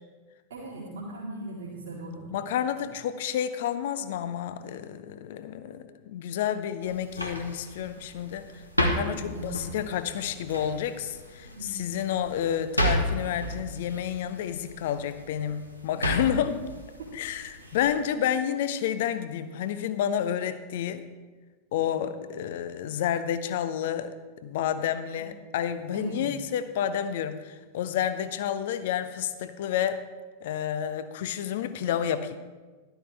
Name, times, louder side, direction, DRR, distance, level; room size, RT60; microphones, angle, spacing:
voice 1, 0.5-2.2 9.1-9.5 11.4-11.8 17.0-17.1 17.6-17.8 21.8-22.0 25.1-25.2 25.9-26.2, right 2 dB, 65° right, -8 dB, 2.4 m, -39 dB
voice 2, 2.3-16.7 17.1-21.0 21.7-24.1 24.4-30.0 30.4-32.4, left 9 dB, 55° left, 12 dB, 0.7 m, -30 dB
sound 1, 6.8-18.0, equal, 85° left, 1.1 m, -33 dB
12.5 x 12.0 x 3.4 m, 1.3 s
figure-of-eight pair, 90°, 0 cm